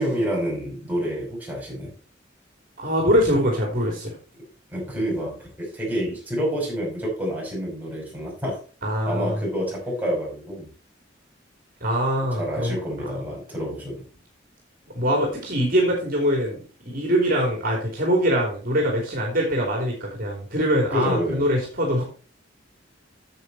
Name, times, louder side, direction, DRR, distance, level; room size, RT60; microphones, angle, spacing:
voice 1, 0.0-1.9 4.7-8.6 9.0-10.7 12.2-14.0 20.9-21.4, equal, 10° right, -4 dB, 5.5 m, -28 dB
voice 2, 2.8-4.1 8.8-9.4 11.8-12.8 14.9-22.0, equal, 50° right, 0 dB, 3.2 m, -23 dB
9.3 x 7.7 x 4.2 m, 0.38 s
head